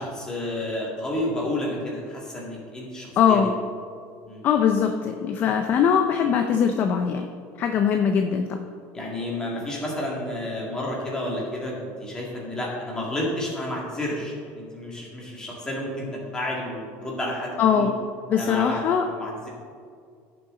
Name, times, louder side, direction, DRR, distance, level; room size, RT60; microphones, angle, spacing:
voice 1, 0.0-3.4 4.2-4.5 8.9-17.9 18.3-18.8 19.0-19.5, left 1 dB, 10° left, -3 dB, 2.1 m, -31 dB
voice 2, 3.2-3.5 4.4-7.3 7.6-8.6 17.6-17.9 18.3-19.0, left 7 dB, 30° left, 5 dB, 0.5 m, -21 dB
15.5 x 6.9 x 3.8 m, 2.2 s
cardioid pair, 175°, 6 cm